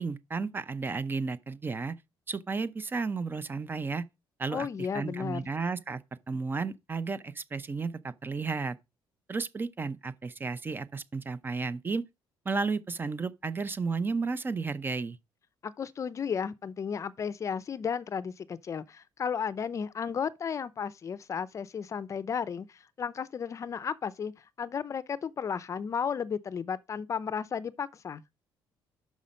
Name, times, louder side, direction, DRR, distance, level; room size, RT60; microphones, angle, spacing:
voice 1, 0.0-2.0 2.3-4.1 4.4-4.7 4.9-6.0 6.3-8.8 9.3-12.0 12.5-15.2, right 4 dB, 25° right, 0.6 m, -33 dB
voice 2, 4.5-5.5 15.6-24.3 24.6-28.2, left 7 dB, 35° left, 0.5 m, -34 dB
6.1 x 5.6 x 5.1 m
cardioid pair, 120°, 9 cm